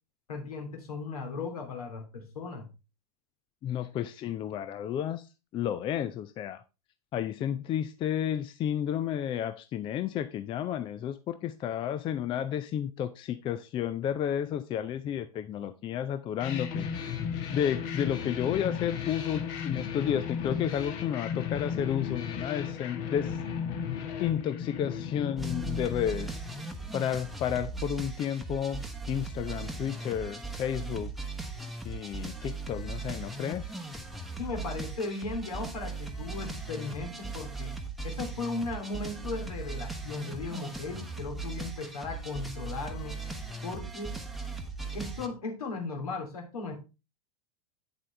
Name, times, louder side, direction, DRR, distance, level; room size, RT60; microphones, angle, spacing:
voice 1, 0.3-2.7 34.4-37.7 38.0-43.2 43.6-44.2 44.9-46.8, left 3 dB, 65° left, 2 dB, 3.0 m, -37 dB
voice 2, 3.6-5.3 5.5-6.6 7.1-16.9 17.5-23.4 24.2-26.4 26.9-31.1 31.8-33.7, left 9 dB, 25° left, 11 dB, 0.5 m, -32 dB
sound 1, 16.4-26.9, left 7 dB, 45° left, 1.5 m, -35 dB
sound 2, 25.4-45.3, right 3 dB, ahead, 1.1 m, -38 dB
9.0 x 7.4 x 3.3 m, 0.28 s
figure-of-eight pair, 90°, 20 cm